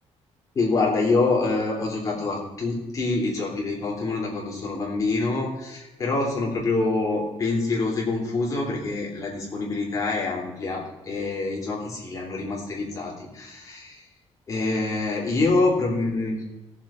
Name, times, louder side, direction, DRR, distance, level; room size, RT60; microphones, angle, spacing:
voice 1, 0.5-14.0 14.5-16.4, left 3 dB, 30° left, -3 dB, 3.4 m, -26 dB
19.0 x 7.2 x 4.4 m, 1.0 s
cardioid pair, 175°, 12 cm